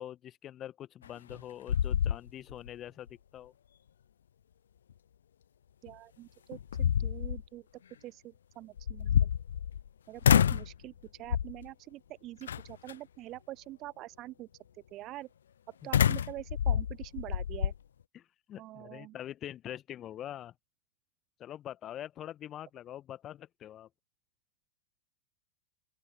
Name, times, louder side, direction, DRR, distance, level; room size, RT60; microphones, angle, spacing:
voice 1, 0.0-3.1 3.3-3.5 18.1-18.2 18.5-20.5 21.4-23.9, left 11 dB, 30° left, 1.5 m, -44 dB
sound 1, 1.0-1.4 1.7-2.7 3.1-3.2 5.9-6.0 6.5-7.4 8.8-9.9 10.2-10.7 11.3-11.7 12.5-12.9 15.9-17.8, left 9 dB, 65° left, 0.4 m, -27 dB
voice 2, 5.8-7.7 8.0-9.3 10.1-14.5 14.7-15.3 15.7-17.7 18.6-19.2, right 16 dB, 35° right, 0.4 m, -45 dB
open air
figure-of-eight pair, 90°, 0 cm